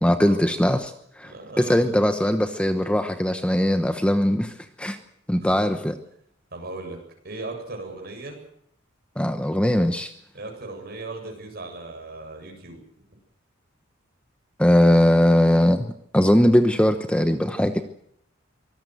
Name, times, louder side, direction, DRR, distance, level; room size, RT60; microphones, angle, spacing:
voice 1, 0.0-5.0 5.3-6.0 9.2-10.1 14.6-15.9 16.1-17.8, equal, 5° left, 8 dB, 1.0 m, -20 dB
voice 2, 1.3-1.8 5.4-5.6 6.5-7.0 7.2-8.4 10.3-12.8 17.7-17.8, right 2 dB, 50° right, 3 dB, 7.8 m, -37 dB
24.5 x 19.0 x 7.9 m, 0.70 s
head